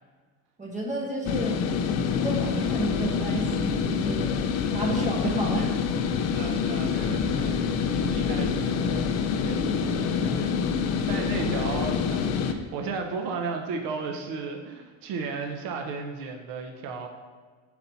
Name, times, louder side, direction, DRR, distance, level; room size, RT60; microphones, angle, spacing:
voice 1, 0.6-1.7 2.1-4.5 4.7-5.7 6.1-6.3, right 1 dB, 15° right, -1 dB, 1.1 m, -31 dB
sound 1, 1.2-12.5, left 6 dB, 40° left, 0.4 m, -26 dB
voice 2, 6.1-10.6 11.1-17.1, right 4 dB, 55° right, 4 dB, 0.7 m, -35 dB
4.3 x 4.0 x 5.5 m, 1.5 s
cardioid pair, 150°, 42 cm